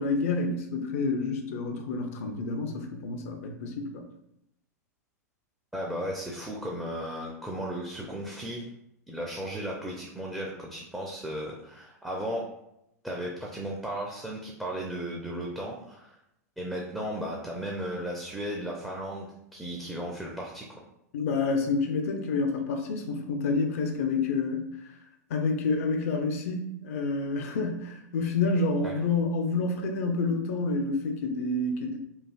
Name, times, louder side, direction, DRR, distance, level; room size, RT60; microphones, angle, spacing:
voice 1, 0.0-4.0 21.1-24.7 25.3-32.0, left 3 dB, 55° left, 4 dB, 0.5 m, -28 dB
voice 2, 5.7-8.6 9.1-12.4 13.0-16.2 16.6-20.7 28.8-28.9, equal, 5° right, -3 dB, 0.4 m, -35 dB
3.2 x 2.4 x 2.3 m, 0.81 s
figure-of-eight pair, 95°, 9 cm